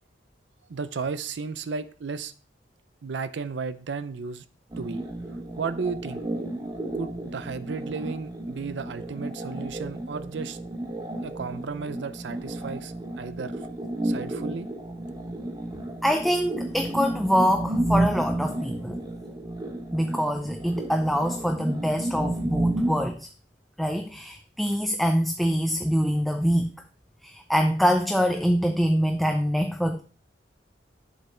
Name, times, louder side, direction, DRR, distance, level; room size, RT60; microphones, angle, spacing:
voice 1, 0.7-2.3 3.0-4.4 4.8-5.1 5.6-6.2 6.9-10.6 11.2-13.7 14.0-14.7, right 5 dB, 70° right, 0.5 m, -34 dB
sound 1, 4.7-23.1, right 1 dB, 20° right, 1.0 m, -32 dB
voice 2, 16.0-19.0 19.9-23.3 23.8-26.7 27.2-30.0, equal, ahead, 0.4 m, -25 dB
8.0 x 6.6 x 3.2 m
head